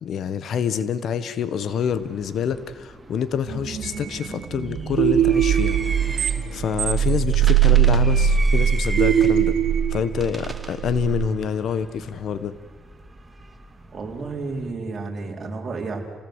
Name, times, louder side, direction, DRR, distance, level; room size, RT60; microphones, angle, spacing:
voice 1, 0.0-5.8 6.5-9.5 9.9-12.5, left 7 dB, 65° left, 14 dB, 1.5 m, -26 dB
sound 1, 1.7-14.7, right 3 dB, 20° right, 2.5 m, -39 dB
sound 2, 3.5-11.3, right 9 dB, 75° right, 2.7 m, -21 dB
voice 2, 13.9-16.0, right 3 dB, 40° right, 0 dB, 4.4 m, -31 dB
28.0 x 19.0 x 8.2 m, 1.4 s
cardioid pair, 90°, 0 cm